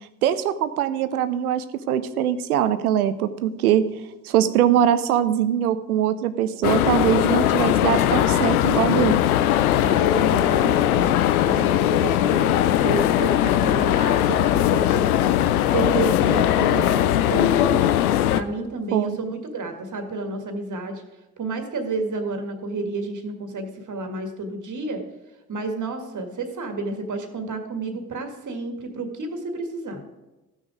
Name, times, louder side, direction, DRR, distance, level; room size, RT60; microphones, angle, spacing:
voice 1, 0.2-3.9 4.2-9.2 18.9-19.2, right 10 dB, 85° right, 14 dB, 0.6 m, -22 dB
sound 1, 6.6-18.4, left 12 dB, 85° left, 0.5 m, -20 dB
voice 2, 9.8-15.3 15.7-17.9 18.3-21.0 21.4-25.1 25.5-30.0, right 3 dB, 45° right, 5 dB, 1.9 m, -30 dB
14.0 x 6.4 x 4.9 m, 1.1 s
figure-of-eight pair, 45°, 43 cm